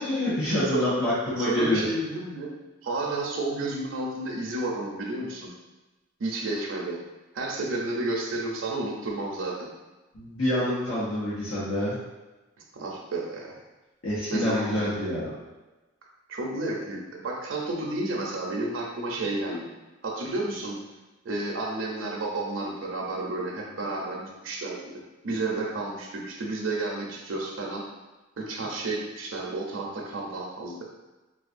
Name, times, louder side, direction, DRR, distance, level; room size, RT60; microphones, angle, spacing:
voice 1, 0.0-1.9 10.1-12.0 14.0-15.3, left 1 dB, 85° left, -10 dB, 0.9 m, -27 dB
voice 2, 1.4-2.5 2.8-5.5 6.2-7.0 7.3-9.7 12.7-13.5 14.3-15.1 16.3-19.7 20.0-20.8 21.2-27.8 28.4-30.8, right 2 dB, 75° right, -2 dB, 0.6 m, -31 dB
4.0 x 2.4 x 2.5 m, 1.1 s
head